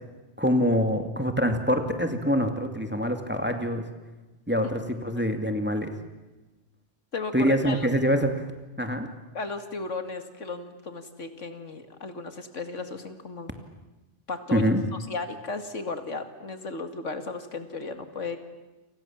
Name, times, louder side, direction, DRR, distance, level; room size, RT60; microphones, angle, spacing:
voice 1, 0.4-3.8 4.5-5.9 7.3-8.4 8.8-9.1 14.5-14.8, equal, 10° right, 6 dB, 2.3 m, -25 dB
voice 2, 7.1-7.9 9.3-13.5 14.3-14.7 15.1-18.4, left 3 dB, 85° left, 8 dB, 2.6 m, -35 dB
29.0 x 27.0 x 7.4 m, 1.1 s
omnidirectional pair, 1.2 m